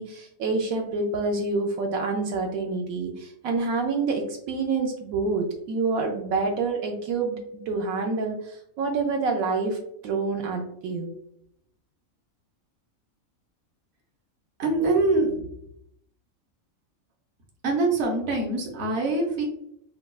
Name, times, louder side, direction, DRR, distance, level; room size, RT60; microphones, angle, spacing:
voice 1, 0.0-11.1, right 3 dB, 80° right, 2 dB, 1.0 m, -27 dB
voice 2, 14.6-15.5 17.6-19.4, right 2 dB, 55° right, 0 dB, 1.1 m, -24 dB
4.7 x 2.3 x 2.3 m, 0.74 s
omnidirectional pair, 1.5 m